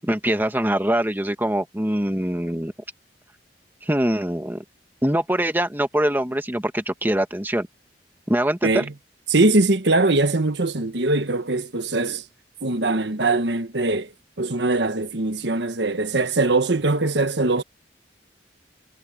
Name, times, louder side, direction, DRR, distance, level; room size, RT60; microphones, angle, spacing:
voice 1, 0.0-2.7 3.8-4.6 5.0-7.7 8.3-8.8, right 1 dB, 10° right, 1.6 m, -23 dB
voice 2, 8.6-8.9 9.3-12.2 12.6-17.6, right 2 dB, 70° right, 1.4 m, -21 dB
head